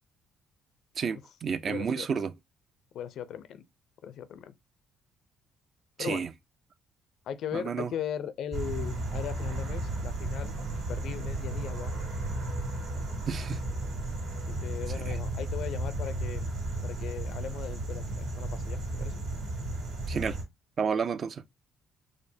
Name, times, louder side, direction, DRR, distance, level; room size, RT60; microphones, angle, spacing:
voice 1, 1.0-2.3 6.0-6.3 7.5-7.9 13.3-13.6 15.0-15.2 20.1-20.4 20.8-21.4, right 6 dB, 50° right, 0.4 m, -31 dB
voice 2, 1.6-2.1 2.9-3.6 4.0-4.5 6.0-6.3 7.3-10.5 10.9-11.9 14.5-16.5 16.8-19.2, left 9 dB, 70° left, 0.4 m, -38 dB
sound 1, 8.5-20.4, right 2 dB, 80° right, 1.9 m, -34 dB
4.9 x 2.1 x 2.6 m
cardioid pair, 85°, 0 cm